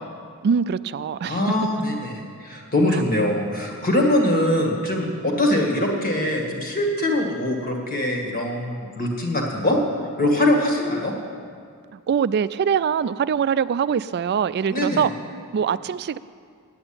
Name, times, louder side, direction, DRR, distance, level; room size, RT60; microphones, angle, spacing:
voice 1, 0.4-1.4 11.9-15.1 15.5-16.2, right 7 dB, 50° right, 16 dB, 0.3 m, -23 dB
voice 2, 1.3-11.1 14.7-15.1, left 1 dB, 40° left, 1 dB, 2.0 m, -22 dB
9.4 x 8.8 x 8.8 m, 2.2 s
head